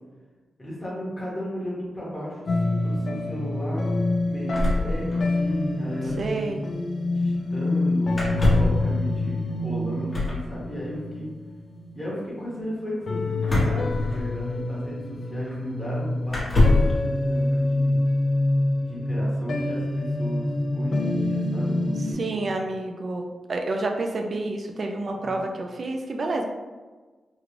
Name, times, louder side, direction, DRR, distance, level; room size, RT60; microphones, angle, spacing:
voice 1, 0.6-3.8 4.3-6.4 7.1-11.3 11.9-16.4 16.7-18.0 18.9-22.5 25.2-25.5, equal, 10° left, -8 dB, 1.1 m, -35 dB
sound 1, 2.5-12.7 13.1-22.1, left 2 dB, 60° left, 0.5 m, -26 dB
sound 2, 4.5-5.6 5.8-5.9 6.1-6.3 8.1-8.8 10.1-10.5 13.4-14.6 15.5-15.6 16.3-17.0, left 2 dB, 40° left, 1.0 m, -23 dB
voice 2, 6.2-6.6 22.0-26.4, right 2 dB, 50° right, 3 dB, 0.4 m, -29 dB
3.6 x 2.4 x 3.1 m, 1.3 s
wide cardioid pair, 100°, 0 cm